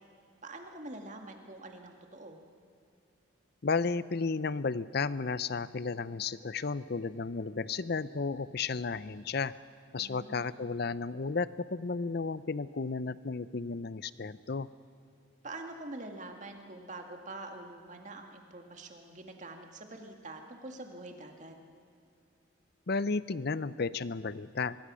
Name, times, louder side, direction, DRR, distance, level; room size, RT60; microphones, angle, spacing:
voice 1, 0.4-2.4 10.0-10.6 15.4-21.6, right 2 dB, 35° right, 3 dB, 2.1 m, -45 dB
voice 2, 3.6-9.5 9.9-14.7 22.9-24.8, left 4 dB, 50° left, 16 dB, 0.6 m, -33 dB
24.0 x 22.5 x 6.3 m, 2.5 s
head